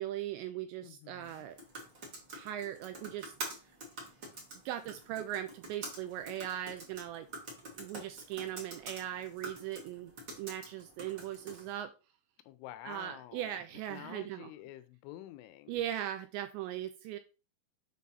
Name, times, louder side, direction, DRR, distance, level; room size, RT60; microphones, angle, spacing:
voice 1, 0.0-1.6 2.3-3.3 4.7-7.3 7.7-10.1 10.4-11.9 12.9-14.5 15.7-17.2, right 12 dB, 85° right, 2.7 m, -39 dB
voice 2, 0.8-1.5 12.4-13.6 13.9-15.8, left 13 dB, 80° left, 3.0 m, -49 dB
sound 1, 1.2-11.7, right 2 dB, 40° right, 1.7 m, -47 dB
8.4 x 4.0 x 5.6 m
omnidirectional pair, 5.6 m